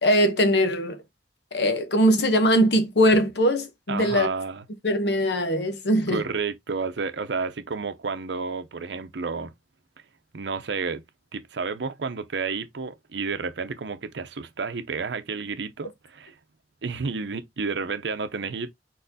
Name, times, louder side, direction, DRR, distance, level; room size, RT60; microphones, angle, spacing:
voice 1, 0.0-1.0 1.5-4.3 4.8-6.2, equal, 70° left, 0.9 m, -21 dB
voice 2, 3.9-4.6 6.1-9.5 10.3-11.0 11.3-16.4 16.8-18.7, right 4 dB, 80° right, 0.7 m, -31 dB
4.4 x 4.2 x 2.7 m
head